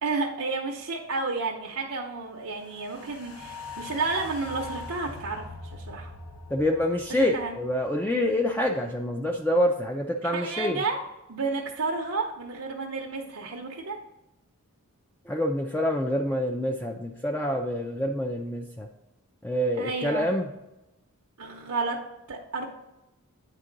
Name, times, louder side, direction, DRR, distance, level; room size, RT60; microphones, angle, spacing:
voice 1, 0.0-5.4 5.7-6.1 7.1-7.6 10.2-11.0 11.3-14.0 19.8-20.3 21.4-22.0 22.3-22.7, right 3 dB, 80° right, -1 dB, 0.7 m, -31 dB
sound 1, 2.6-9.0 9.3-9.4, left 2 dB, 75° left, 1.1 m, -42 dB
voice 2, 6.5-10.8 15.3-18.9 19.4-20.5, left 1 dB, 10° left, 2 dB, 0.3 m, -26 dB
9.0 x 3.7 x 3.8 m, 0.94 s
head